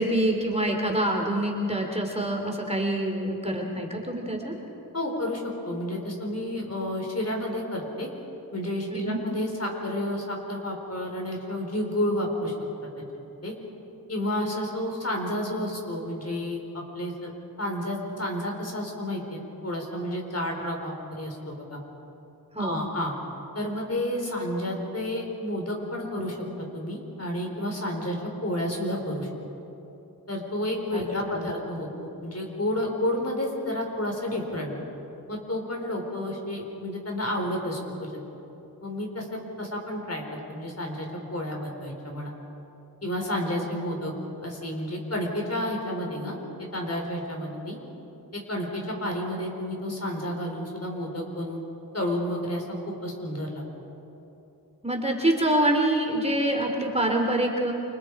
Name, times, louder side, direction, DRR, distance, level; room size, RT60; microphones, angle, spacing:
voice 1, 0.0-4.6 8.9-9.2 22.5-22.8 30.9-31.5 54.8-57.7, right 1 dB, 15° right, 1 dB, 3.3 m, -26 dB
voice 2, 4.9-8.1 8.5-12.6 13.4-13.5 14.1-17.3 17.6-21.8 22.6-23.1 23.5-26.4 26.7-28.2 28.4-29.3 30.3-34.7 35.3-38.2 38.8-42.3 43.0-44.1 44.4-46.4 46.7-47.8 48.3-51.7 51.9-53.6, left 1 dB, 40° left, 0 dB, 4.7 m, -31 dB
29.0 x 25.5 x 4.9 m, 3.0 s
wide cardioid pair, 60°, 37 cm